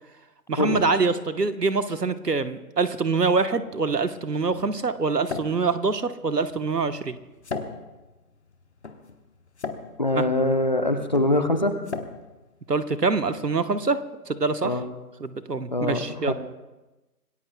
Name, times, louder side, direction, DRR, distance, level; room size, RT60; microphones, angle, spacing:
voice 1, 0.5-7.2 10.2-10.3 12.7-14.0 14.3-14.7 15.2-16.3, right 4 dB, 80° right, 10 dB, 1.3 m, -25 dB
sound 1, 3.6-13.4, left 4 dB, 45° left, 1.1 m, -39 dB
voice 2, 10.0-11.7 14.6-14.8 15.7-16.3, left 1 dB, 30° left, 8 dB, 0.8 m, -23 dB
26.0 x 19.0 x 2.3 m, 1.1 s
figure-of-eight pair, 155°, 47 cm